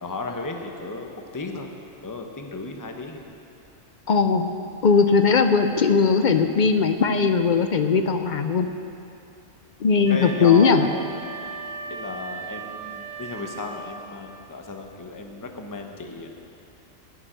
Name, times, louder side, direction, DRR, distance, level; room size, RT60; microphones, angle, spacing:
voice 1, 0.0-1.7 2.0-3.2 10.1-10.8 11.9-16.3, left 3 dB, 20° left, 3 dB, 0.8 m, -34 dB
voice 2, 4.1-4.5 4.8-8.7 9.8-10.8, left 5 dB, 55° left, 8 dB, 0.5 m, -19 dB
Wind instrument woodwind instrument, 10.0-14.0, right 5 dB, 35° right, 1.4 m, -37 dB
12.0 x 7.1 x 9.1 m, 2.7 s
omnidirectional pair, 1.3 m